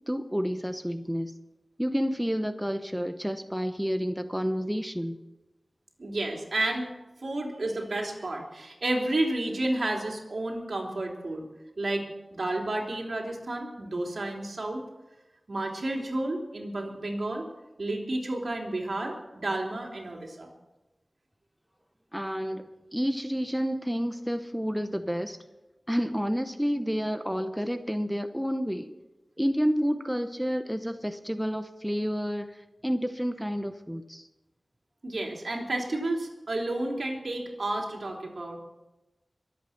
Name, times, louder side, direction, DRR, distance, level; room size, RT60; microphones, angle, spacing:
voice 1, 0.1-1.3 1.8-5.2 22.1-25.4 25.9-28.9 29.4-32.5 32.8-34.3, equal, 5° right, 8 dB, 0.9 m, -30 dB
voice 2, 6.0-6.9 7.2-11.5 11.8-12.0 12.3-14.8 15.5-17.5 17.8-20.5 35.0-38.6, right 2 dB, 70° right, 0 dB, 3.3 m, -31 dB
23.5 x 8.4 x 5.9 m, 1.0 s
wide cardioid pair, 65°, 0 cm